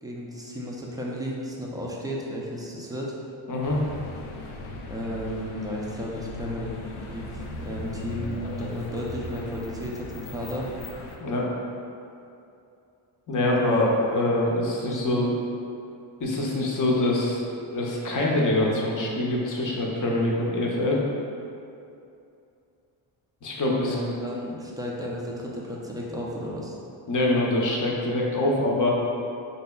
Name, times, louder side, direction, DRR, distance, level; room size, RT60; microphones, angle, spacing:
voice 1, 0.0-3.1 4.9-6.8 7.1-10.7 13.5-14.0 14.9-15.2 23.9-26.8, equal, 10° right, -4 dB, 0.4 m, -34 dB
voice 2, 3.5-3.8 11.2-11.5 13.3-15.3 16.2-21.0 23.4-24.0 27.1-28.9, left 1 dB, 40° left, -2 dB, 0.7 m, -24 dB
sound 1, 3.6-11.2, left 2 dB, 80° left, 0.6 m, -38 dB
4.1 x 2.7 x 2.3 m, 2.6 s
cardioid pair, 75°, 48 cm